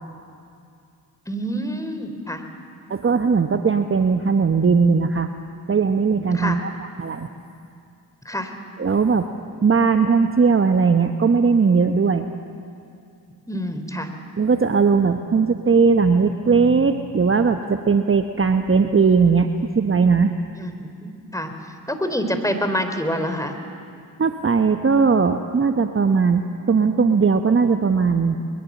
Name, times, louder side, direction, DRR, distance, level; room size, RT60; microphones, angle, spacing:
voice 1, 1.3-2.4 6.3-6.6 8.3-8.5 13.5-14.1 20.6-21.5 21.9-23.5, equal, 5° left, 7 dB, 3.5 m, -27 dB
voice 2, 2.9-5.3 5.7-6.7 7.0-7.3 8.8-9.3 9.6-12.3 14.4-20.3 24.2-28.4, right 5 dB, 25° right, 7 dB, 1.2 m, -18 dB
22.0 x 22.0 x 7.3 m, 2.4 s
hypercardioid pair, 45°, 48 cm